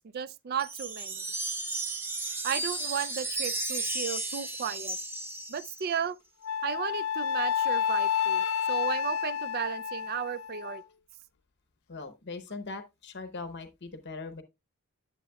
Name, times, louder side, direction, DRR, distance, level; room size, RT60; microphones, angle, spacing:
voice 1, 0.1-1.2 2.4-5.0 5.5-6.2 6.6-10.8, right 8 dB, 45° right, 0.4 m, -34 dB
sound 1, 0.6-6.0, right 2 dB, 10° right, 0.7 m, -34 dB
Wind instrument woodwind instrument, 6.4-10.8, left 8 dB, 70° left, 0.4 m, -29 dB
voice 2, 11.9-14.4, left 3 dB, 50° left, 0.8 m, -40 dB
10.5 x 7.6 x 2.2 m
head